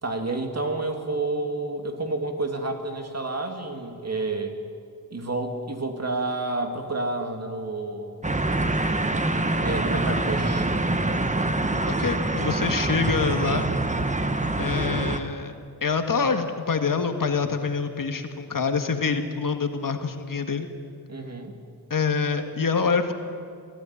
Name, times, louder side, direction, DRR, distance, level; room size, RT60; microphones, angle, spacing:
voice 1, 0.0-4.5 5.1-8.3 9.6-10.7 21.1-21.5, right 2 dB, 40° right, 4 dB, 2.7 m, -29 dB
sound 1, 8.2-15.2, right 2 dB, 20° right, 1.3 m, -25 dB
voice 2, 11.9-13.7 14.6-15.5 15.8-20.7 21.9-23.1, left 5 dB, 55° left, 6 dB, 1.8 m, -26 dB
23.5 x 16.0 x 9.8 m, 2.4 s
wide cardioid pair, 105°, 39 cm